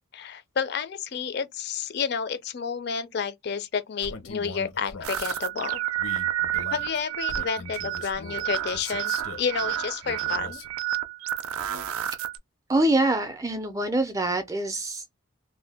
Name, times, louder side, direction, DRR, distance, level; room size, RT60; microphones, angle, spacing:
voice 1, 0.1-5.8 6.7-10.6, left 6 dB, 50° left, 0.4 m, -30 dB
Male speech man speaking, 4.0-5.4 6.0-9.5 10.0-10.7, left 3 dB, 90° left, 0.8 m, -40 dB
sound 1, 5.0-12.4, right 12 dB, 85° right, 0.4 m, -30 dB
voice 2, 12.7-15.2, right 2 dB, 15° right, 0.4 m, -25 dB
2.6 x 2.1 x 3.3 m
head